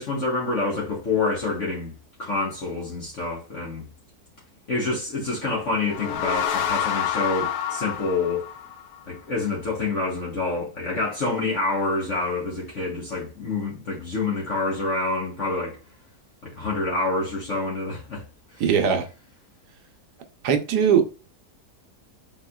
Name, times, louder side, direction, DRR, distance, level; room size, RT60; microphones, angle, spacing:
voice 1, 0.0-1.9 2.2-3.9 4.7-8.4 9.1-15.8 16.4-18.2 18.5-18.6, left 3 dB, 50° left, 1.5 m, -27 dB
sound 1, 5.7-9.2, left 9 dB, 75° left, 1.1 m, -28 dB
voice 2, 18.6-19.1 20.4-21.1, right 7 dB, 75° right, 1.3 m, -20 dB
5.7 x 3.6 x 2.3 m
omnidirectional pair, 1.8 m